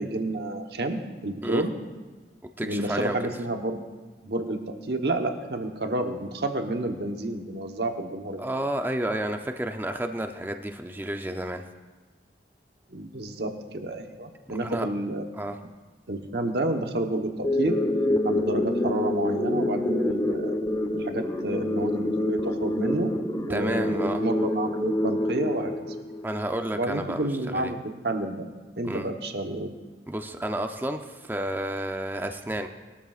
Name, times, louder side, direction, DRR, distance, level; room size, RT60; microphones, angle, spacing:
voice 1, 0.0-1.7 2.6-3.8 4.2-4.6 4.9-8.4 12.9-15.2 16.1-17.8 18.2-20.5 20.9-23.2 23.5-25.7 26.7-27.8 28.0-28.5 28.8-29.7, right 2 dB, 65° right, 4 dB, 1.1 m, -30 dB
voice 2, 2.4-3.2 8.4-11.6 14.6-14.9 15.3-15.6 23.5-24.2 26.2-27.3 27.5-27.7 28.8-29.1 30.1-32.7, right 1 dB, 10° right, 5 dB, 0.6 m, -31 dB
sound 1, 17.4-26.5, left 1 dB, 20° left, 0.8 m, -27 dB
20.5 x 13.0 x 2.5 m, 1.3 s
head